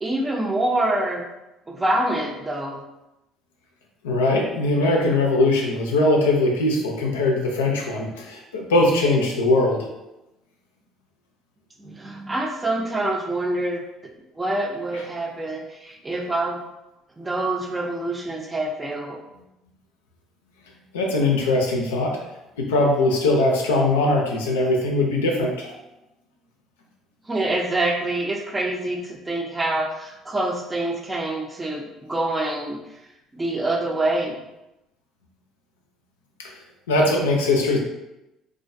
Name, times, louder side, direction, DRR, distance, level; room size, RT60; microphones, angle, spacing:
voice 1, 0.0-1.3 1.7-2.8 11.8-13.8 14.4-16.6 17.2-19.2 27.3-31.8 32.1-32.8 33.3-34.4, right 2 dB, 20° right, 2 dB, 0.5 m, -26 dB
voice 2, 4.0-9.9 14.9-15.0 20.9-22.2 22.6-25.7 36.4-36.5 36.9-37.8, left 2 dB, 85° left, 0 dB, 0.4 m, -21 dB
2.4 x 2.2 x 2.5 m, 0.93 s
hypercardioid pair, 60°, 0 cm